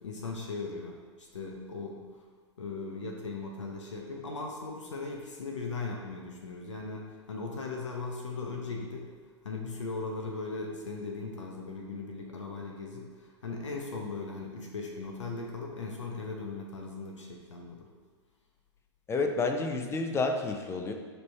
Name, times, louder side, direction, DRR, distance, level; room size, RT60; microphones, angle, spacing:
voice 1, 0.0-2.1 2.6-9.1 9.4-17.9, left 3 dB, 85° left, 0 dB, 0.8 m, -38 dB
voice 2, 19.1-20.9, left 3 dB, 15° left, 4 dB, 0.6 m, -30 dB
6.8 x 3.4 x 4.4 m, 1.5 s
hypercardioid pair, 105°, 15 cm